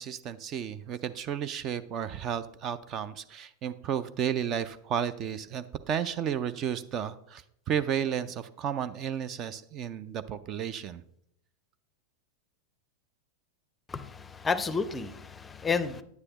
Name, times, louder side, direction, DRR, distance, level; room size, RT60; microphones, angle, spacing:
voice 1, 0.0-11.0, right 8 dB, 35° right, 0.4 m, -33 dB
voice 2, 13.9-16.0, left 5 dB, 15° left, 0.5 m, -31 dB
9.6 x 9.2 x 2.9 m
figure-of-eight pair, 90°, 0 cm